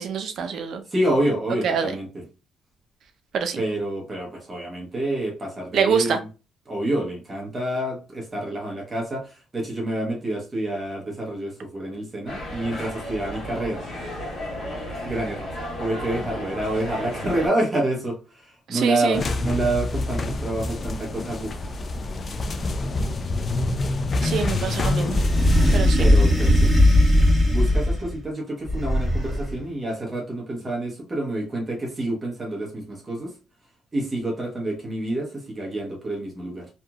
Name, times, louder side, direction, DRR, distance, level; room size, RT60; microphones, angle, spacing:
voice 1, 0.0-0.8 1.6-1.9 3.3-3.6 5.7-6.2 18.7-19.2 24.2-25.2 25.7-26.1, right 6 dB, 65° right, 0.6 m, -25 dB
voice 2, 0.9-2.2 3.6-6.3 6.7-13.8 15.0-21.6 26.0-26.7 27.5-33.3 33.9-36.7, right 1 dB, 30° right, 1.0 m, -28 dB
sound 1, 12.3-17.5, left 1 dB, 65° left, 1.3 m, -33 dB
sound 2, 19.1-25.8, left 2 dB, 40° left, 0.4 m, -27 dB
sound 3, 25.1-28.1 28.7-29.6, left 1 dB, ahead, 1.4 m, -18 dB
2.9 x 2.5 x 2.3 m
cardioid pair, 90°, 0 cm